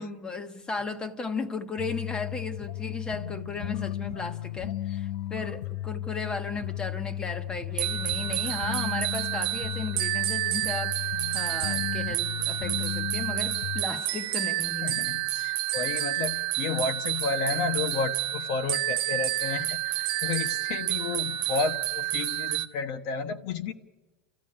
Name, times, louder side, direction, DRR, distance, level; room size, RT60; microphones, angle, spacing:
voice 1, 0.0-15.0, left 4 dB, 15° left, 8 dB, 1.2 m, -35 dB
sound 1, 1.8-13.8, left 13 dB, 75° left, 0.8 m, -35 dB
sound 2, 7.8-22.7, right 15 dB, 70° right, 1.2 m, -29 dB
voice 2, 14.8-23.7, left 5 dB, 50° left, 8 dB, 1.2 m, -32 dB
29.5 x 14.0 x 9.9 m, 1.2 s
supercardioid pair, 150°, 5 cm